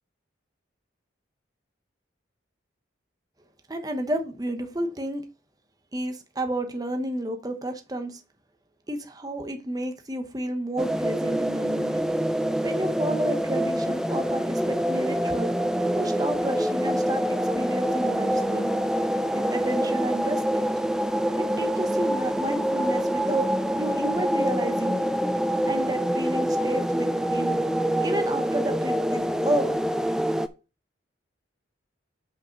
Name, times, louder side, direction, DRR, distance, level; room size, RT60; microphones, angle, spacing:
voice 1, 3.7-5.2 5.9-8.2 8.9-12.0 12.6-15.5 15.9-18.7 19.5-20.6 21.4-23.5 23.8-25.1 25.6-27.6 28.0-29.8, right 1 dB, 20° right, 0.9 m, -31 dB
sound 1, 10.8-30.5, equal, 5° right, 0.3 m, -26 dB
5.7 x 5.0 x 5.8 m
head